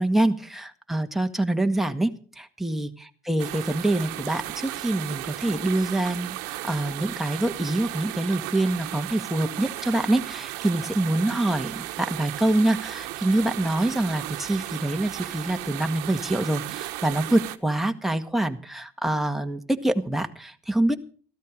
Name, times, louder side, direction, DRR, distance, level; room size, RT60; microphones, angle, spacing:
voice 1, 0.0-2.1 2.4-21.0, right 1 dB, ahead, 4 dB, 1.7 m, -25 dB
sound 1, 3.4-17.6, right 17 dB, 80° right, 1.1 m, -35 dB
14.5 x 13.0 x 5.1 m, 0.42 s
supercardioid pair, 75°, 17 cm